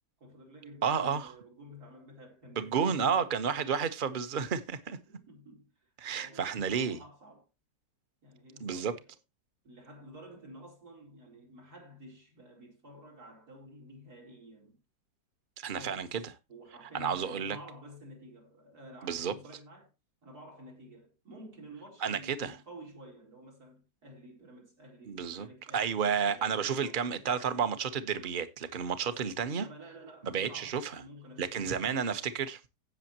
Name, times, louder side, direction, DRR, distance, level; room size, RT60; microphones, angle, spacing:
voice 1, 0.2-3.6 5.1-7.5 8.2-9.1 9.6-14.8 15.6-16.2 16.5-19.9 20.2-27.4 29.0-29.2 29.5-32.1, equal, 60° right, 4.9 m, -51 dB
voice 2, 0.8-1.3 2.6-5.0 6.0-7.0 8.6-9.0 15.6-16.2 16.9-17.6 19.0-19.3 22.0-22.6 25.1-25.5 25.7-29.7 30.2-31.0 31.4-32.6, right 7 dB, 35° right, 1.1 m, -31 dB
16.5 x 6.7 x 2.9 m
omnidirectional pair, 1.8 m